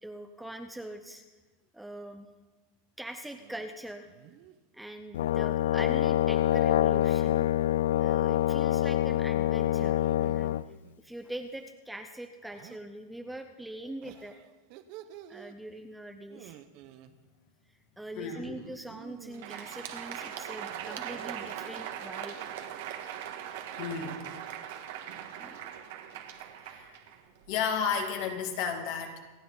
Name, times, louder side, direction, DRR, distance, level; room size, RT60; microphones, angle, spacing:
voice 1, 0.0-1.2 1.7-2.3 3.0-4.1 4.7-7.5 8.0-10.6 11.0-14.4 15.3-16.5 18.0-22.5 25.4-25.7, right 1 dB, 5° right, 6 dB, 0.6 m, -43 dB
sound 1, 3.3-3.7 4.0-4.6 6.3-7.5 9.6-11.0 12.4-12.8 14.0-15.6 16.3-17.1 18.6-19.7 20.7-21.7, right 12 dB, 45° right, 0.8 m, -50 dB
Brass instrument, 5.1-10.6, left 12 dB, 90° left, 0.3 m, -26 dB
voice 2, 18.1-18.5 23.8-24.3 26.6-27.0 27.5-29.2, left 6 dB, 50° left, 4 dB, 2.1 m, -32 dB
Crowd, 19.2-27.7, right 10 dB, 65° right, 1.6 m, -40 dB
26.5 x 9.2 x 4.0 m, 1.2 s
supercardioid pair, 150°, 0 cm